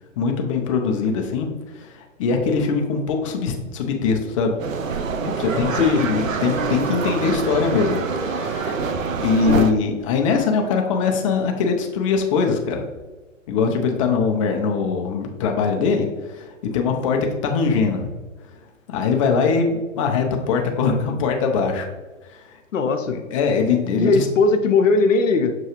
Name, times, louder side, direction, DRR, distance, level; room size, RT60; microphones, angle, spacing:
voice 1, 0.2-1.5 1.7-4.6 5.4-8.7 9.2-12.8 13.5-18.1 18.9-21.9 22.3-22.4 23.3-24.3, left 5 dB, 25° left, 2 dB, 0.4 m, -22 dB
sound 1, 4.6-9.7, right 5 dB, 90° right, 0.5 m, -25 dB
voice 2, 22.7-23.2 24.0-25.5, left 4 dB, 80° left, 6 dB, 0.7 m, -18 dB
6.6 x 2.3 x 2.9 m, 1.3 s
hypercardioid pair, 125°, 39 cm